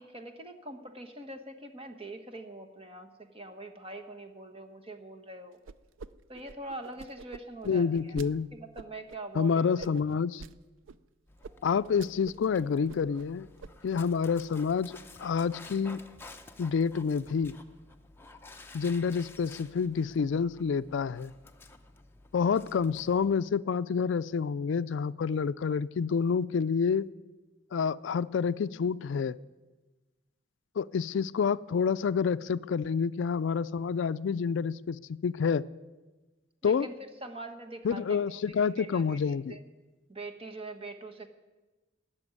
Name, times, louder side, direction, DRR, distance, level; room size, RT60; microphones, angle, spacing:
voice 1, 0.0-5.6 6.3-9.9 36.6-36.9 37.2-39.6 40.1-41.3, right 2 dB, 30° right, 5 dB, 1.1 m, -43 dB
sound 1, 5.7-6.1 6.3-8.3 8.8-9.2 9.8-10.5 10.9-11.0 11.4-11.5 11.8-12.5 12.7-13.3 13.6-14.0, right 4 dB, 85° right, 0.4 m, -45 dB
voice 2, 7.7-8.5 9.4-10.4 11.6-13.5 13.8-14.9 15.2-16.1 16.6-17.5 18.7-21.3 22.3-27.1 27.7-29.4 30.8-35.6 36.6-36.9 37.8-39.6, left 6 dB, 70° left, 15 dB, 0.4 m, -28 dB
Dog, 11.3-23.4, left 2 dB, 10° left, 0.6 m, -52 dB
16.0 x 7.0 x 9.7 m, 1.2 s
head